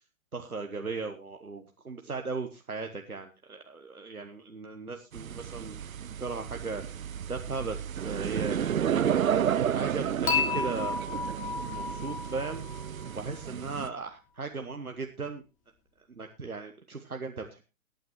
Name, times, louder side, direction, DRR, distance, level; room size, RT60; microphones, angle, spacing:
voice 1, 0.3-5.8 6.2-9.1 9.6-12.6 13.1-14.1 14.3-15.4 16.1-17.7, right 4 dB, 85° right, 4 dB, 1.2 m, -37 dB
sound 1, 5.1-13.9, right 9 dB, 70° right, 0.6 m, -32 dB
Dishes pots and pans / Chink clink, 10.3-13.4, left 6 dB, 20° left, 2.3 m, -32 dB
21.0 x 9.2 x 3.0 m, 0.28 s
figure-of-eight pair, 115°, 42 cm